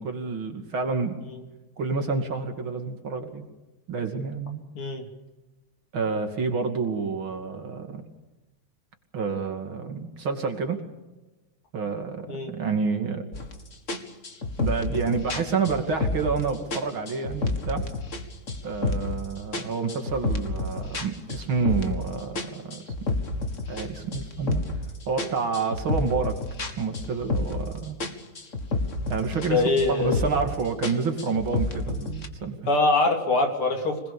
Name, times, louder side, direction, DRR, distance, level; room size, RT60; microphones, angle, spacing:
voice 1, 0.0-1.2 1.8-3.5 3.9-4.6 5.9-8.0 9.1-10.8 11.7-13.2 14.6-17.8 18.6-22.8 23.7-24.6 25.1-26.3 26.8-28.0 29.1-29.6 29.9-32.6, right 5 dB, 70° right, 4 dB, 3.4 m, -28 dB
voice 2, 4.8-5.1 12.3-12.5 29.4-30.2 32.7-34.0, left 3 dB, 90° left, 3 dB, 4.1 m, -24 dB
sound 1, 13.3-13.5 13.9-16.4 16.7-18.2 18.5-19.2 19.5-22.0 22.4-24.8 25.2-27.7 28.0-29.5 29.8-30.5 30.8-32.3, left 2 dB, 35° left, 2.3 m, -29 dB
26.5 x 20.0 x 7.1 m, 1.1 s
omnidirectional pair, 2.3 m